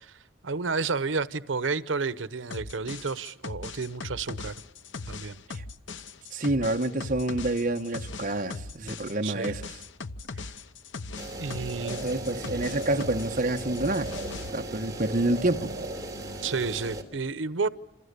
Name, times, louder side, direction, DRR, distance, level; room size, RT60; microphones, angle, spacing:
voice 1, 0.0-4.5 5.1-5.4 9.2-9.5 11.4-12.1 16.4-17.7, right 4 dB, 90° right, 0.9 m, -31 dB
sound 1, 2.5-13.3 13.6-14.5, left 3 dB, 80° left, 1.0 m, -39 dB
voice 2, 6.3-9.7 11.9-14.1 14.5-15.7, right 2 dB, 45° right, 1.2 m, -28 dB
sound 2, 11.2-17.0, right 2 dB, 20° right, 3.3 m, -37 dB
28.0 x 28.0 x 6.8 m
head